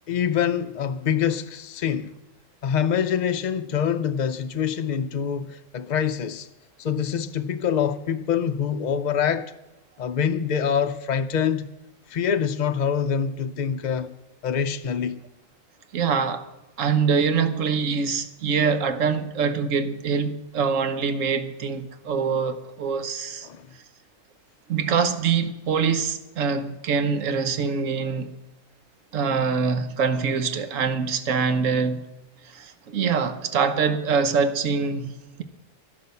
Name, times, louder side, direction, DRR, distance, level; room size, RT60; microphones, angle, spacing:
voice 1, 0.1-2.1 2.6-6.5 6.8-9.5 10.0-11.7 12.1-14.1 14.4-15.2 23.4-23.7, left 8 dB, 60° left, 0.5 m, -25 dB
voice 2, 15.9-16.4 16.8-23.5 24.7-28.3 29.1-32.0 32.4-35.4, right 5 dB, 75° right, 1.4 m, -24 dB
12.5 x 11.0 x 6.9 m
omnidirectional pair, 1.3 m